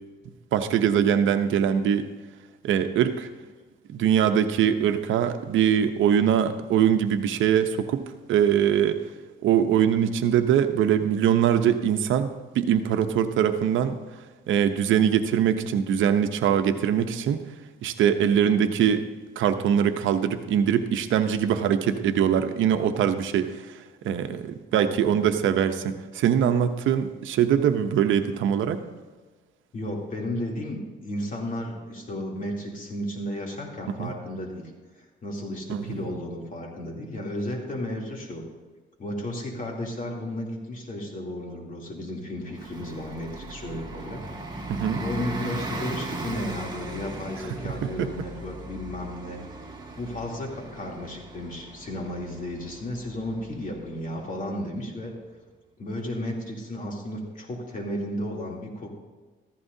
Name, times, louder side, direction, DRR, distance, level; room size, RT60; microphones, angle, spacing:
voice 1, 0.5-2.1 2.6-3.3 3.9-8.0 8.3-9.0 9.4-14.0 14.5-17.4 17.8-19.1 19.4-23.6 24.0-28.8 34.0-34.1 35.7-36.0 44.7-45.0 47.8-48.1, right 9 dB, 75° right, 8 dB, 0.8 m, -22 dB
voice 2, 24.7-25.4 29.7-34.7 35.0-38.4 39.0-44.3 45.0-49.4 50.0-55.1 55.8-58.9, left 1 dB, 40° left, -1 dB, 3.1 m, -34 dB
Bus, 42.5-54.8, right 2 dB, 20° right, 2.3 m, -38 dB
15.0 x 15.0 x 2.7 m, 1.3 s
cardioid pair, 90°, 20 cm